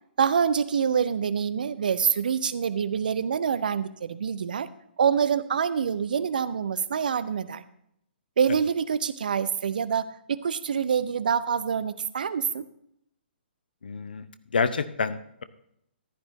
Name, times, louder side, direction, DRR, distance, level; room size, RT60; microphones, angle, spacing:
voice 1, 0.2-4.7 5.0-7.6 8.4-12.6, right 7 dB, 50° right, 15 dB, 0.6 m, -26 dB
voice 2, 13.8-14.2 14.5-15.4, left 5 dB, 60° left, 13 dB, 0.7 m, -28 dB
14.5 x 10.5 x 3.0 m, 0.73 s
figure-of-eight pair, 125°, 6 cm